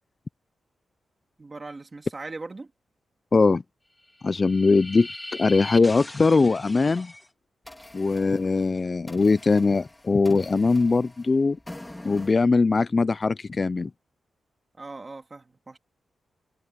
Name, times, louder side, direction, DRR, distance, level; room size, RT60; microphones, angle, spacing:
voice 1, 1.4-2.7 14.8-15.8, right 3 dB, 25° right, 1.9 m, -39 dB
voice 2, 3.3-3.6 4.2-7.1 7.9-11.6 12.0-13.9, left 4 dB, 30° left, 0.3 m, -21 dB
sound 1, 4.0-7.3 7.6-12.3, left 1 dB, 10° left, 2.4 m, -42 dB
wide cardioid pair, 140°, 0 cm